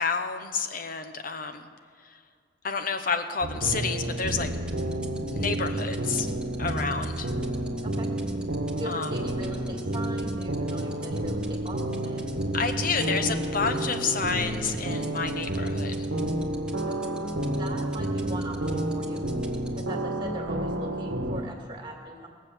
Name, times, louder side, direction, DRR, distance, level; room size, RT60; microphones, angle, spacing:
voice 1, 0.0-1.7 2.6-4.5 5.3-6.3 6.6-7.3 8.9-9.1 12.5-16.1, left 5 dB, 50° left, 8 dB, 0.9 m, -29 dB
sound 1, 3.4-21.4, right 1 dB, 70° right, 1.1 m, -30 dB
sound 2, 4.0-19.9, right 3 dB, 5° right, 1.3 m, -45 dB
voice 2, 8.8-12.4 16.9-17.1 17.5-19.3 19.7-22.3, right 1 dB, 25° right, 1 dB, 2.2 m, -40 dB
20.0 x 7.5 x 7.3 m, 2.1 s
head